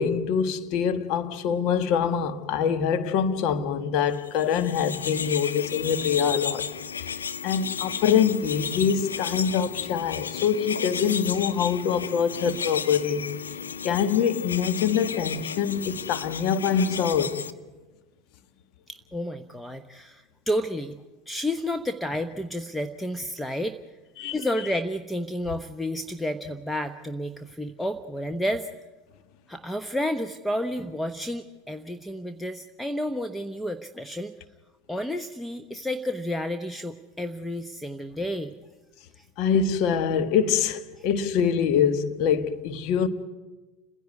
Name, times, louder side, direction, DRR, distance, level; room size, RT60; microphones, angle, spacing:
voice 1, 0.0-6.7 7.4-13.2 13.8-17.4 24.2-24.3 39.4-43.1, left 7 dB, 55° left, 1.6 m, -24 dB
sound 1, 4.3-17.5, left 6 dB, 90° left, 0.7 m, -34 dB
voice 2, 18.9-21.0 21.3-23.8 24.3-28.7 29.5-34.3 34.9-38.5 39.2-39.3 41.0-41.1, left 1 dB, 5° left, 0.9 m, -31 dB
30.0 x 10.5 x 9.5 m
hypercardioid pair, 85°, 0 cm